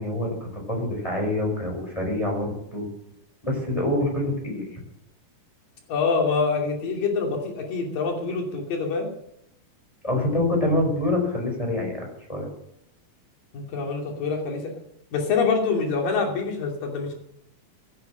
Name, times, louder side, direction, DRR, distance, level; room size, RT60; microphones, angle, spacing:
voice 1, 0.0-2.9 3.4-4.8 10.0-12.5, left 1 dB, 10° left, 0 dB, 4.9 m, -26 dB
voice 2, 5.9-9.1 13.5-14.6 15.1-17.1, left 4 dB, 80° left, 1 dB, 4.5 m, -25 dB
14.0 x 9.8 x 7.6 m, 0.80 s
omnidirectional pair, 3.9 m